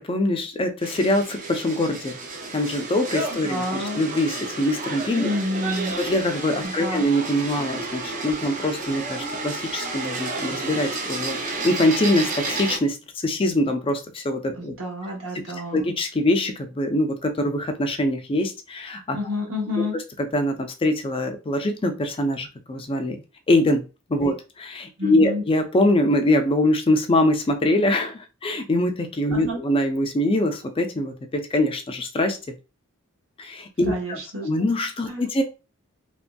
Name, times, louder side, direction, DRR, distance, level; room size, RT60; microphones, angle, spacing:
voice 1, 0.0-2.2 2.5-5.3 6.0-14.7 15.3-15.4 15.7-19.2 20.2-23.2 23.5-23.8 24.1-32.4 33.4-35.4, left 1 dB, 25° left, 6 dB, 0.4 m, -23 dB
sound 1, 0.8-12.8, right 3 dB, 35° right, 0.6 m, -31 dB
voice 2, 3.4-4.0 5.2-6.0 6.6-7.1 14.6-15.8 19.1-19.9 25.0-25.4 29.3-29.6 33.9-34.5 35.1-35.3, left 1 dB, 65° right, 1 dB, 0.9 m, -29 dB
2.9 x 2.6 x 2.2 m, 0.30 s
head